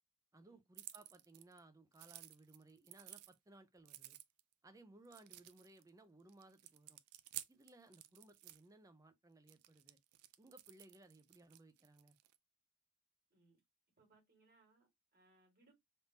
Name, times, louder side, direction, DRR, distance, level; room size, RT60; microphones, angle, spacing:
voice 1, 0.3-4.2 4.6-7.0 7.5-10.0 10.4-12.2, right 2 dB, 15° right, 0.4 m, -62 dB
sound 1, 0.7-1.6 1.9-3.3 3.8-4.5 5.0-5.9 6.3-8.6 9.5-12.4, right 14 dB, 80° right, 0.4 m, -53 dB
voice 2, 14.0-15.7, right 2 dB, 40° right, 1.8 m, -72 dB
3.5 x 2.6 x 2.7 m
head